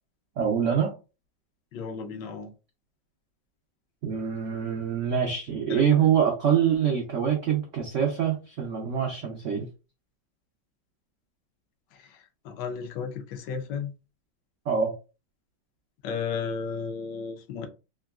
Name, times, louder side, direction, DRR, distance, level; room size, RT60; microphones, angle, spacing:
voice 1, 0.4-0.9 4.0-9.7 14.7-14.9, right 8 dB, 80° right, 0.6 m, -25 dB
voice 2, 1.7-2.5 5.7-5.8 12.0-13.9 16.0-17.7, left 6 dB, 75° left, 1.2 m, -34 dB
3.7 x 2.2 x 2.3 m
omnidirectional pair, 2.0 m